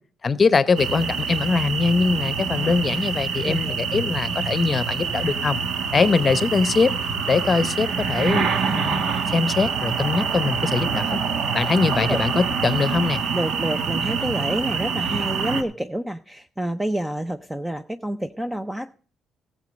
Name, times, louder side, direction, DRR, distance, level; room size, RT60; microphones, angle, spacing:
voice 1, 0.2-5.6 5.9-6.9 7.3-9.0 9.3-11.2 11.5-13.2, left 4 dB, 35° left, 16 dB, 0.8 m, -22 dB
sound 1, 0.8-15.6, right 6 dB, 75° right, 1.2 m, -26 dB
voice 2, 3.4-3.8 12.1-12.2 13.3-18.9, right 1 dB, 10° right, 10 dB, 0.6 m, -28 dB
14.5 x 7.5 x 5.1 m, 0.41 s
cardioid pair, 90°, 0 cm